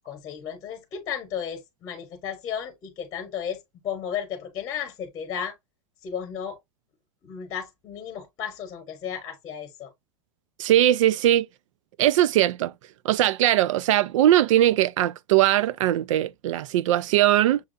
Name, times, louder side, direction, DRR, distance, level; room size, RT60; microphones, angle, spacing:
voice 1, 0.0-5.5 6.0-6.6 7.2-9.9, left 8 dB, 25° left, 0.9 m, -34 dB
voice 2, 10.6-11.4 12.0-12.7 13.0-17.6, right 13 dB, 75° right, 0.4 m, -20 dB
6.7 x 2.3 x 2.5 m
supercardioid pair, 160°, 16 cm